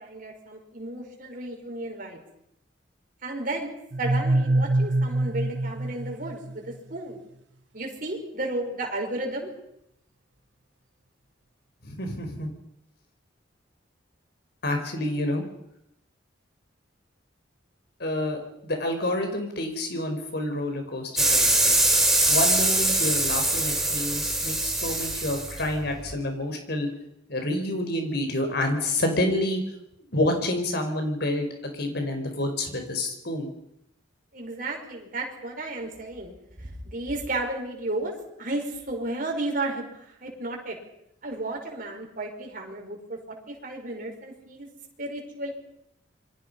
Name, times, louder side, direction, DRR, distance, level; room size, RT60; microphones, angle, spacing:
voice 1, 0.0-2.2 3.2-7.2 7.7-9.5 34.3-36.3 36.6-38.1 38.4-39.8 40.2-40.8 41.2-44.7 45.0-45.5, right 2 dB, 50° right, 1 dB, 5.6 m, -33 dB
sound 1, 3.9-6.7, right 2 dB, 75° right, 1.2 m, -25 dB
voice 2, 11.8-12.5 14.6-15.4 18.0-21.8 22.3-26.9 27.3-29.6 30.1-33.5, left 1 dB, 60° left, 5 dB, 5.1 m, -28 dB
sound 2, 21.2-26.1, right 1 dB, ahead, 4.4 m, -23 dB
28.0 x 23.5 x 5.7 m, 0.79 s
head